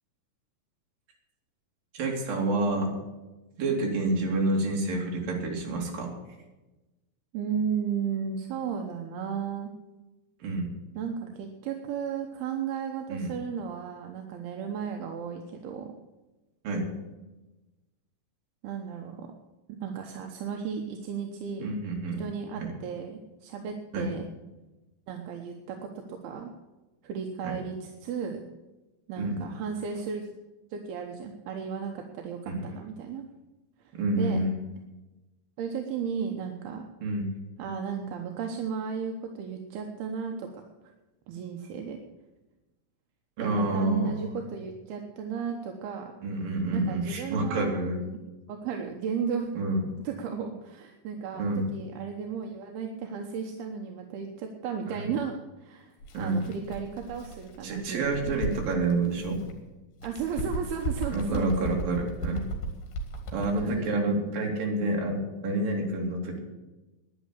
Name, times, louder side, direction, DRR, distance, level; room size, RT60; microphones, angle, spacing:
voice 1, 1.9-2.9 3.6-6.1 10.4-10.7 13.1-13.3 16.6-16.9 21.6-22.2 22.6-22.7 23.9-24.1 27.4-27.5 29.2-29.4 32.5-32.6 33.9-34.6 37.0-37.3 43.4-44.3 46.2-48.0 49.6-49.8 51.4-51.7 54.9-55.1 56.1-56.4 57.6-59.4 61.1-62.5 63.3-66.4, right 2 dB, 65° right, 0 dB, 4.2 m, -28 dB
voice 2, 7.3-9.7 11.0-15.9 18.6-19.3 19.7-21.8 22.2-24.2 25.1-26.5 27.0-28.4 29.1-30.3 30.7-33.2 33.8-34.4 35.6-36.8 37.6-40.5 41.3-42.0 43.4-46.1 46.7-48.1 48.5-49.5 50.0-58.2 60.0-61.7 63.6-64.3, right 7 dB, 85° right, 3 dB, 3.0 m, -34 dB
Bird, 56.0-59.6 60.0-63.8, right 1 dB, 65° left, 3.4 m, -36 dB
11.0 x 10.5 x 8.2 m, 1.1 s
omnidirectional pair, 4.4 m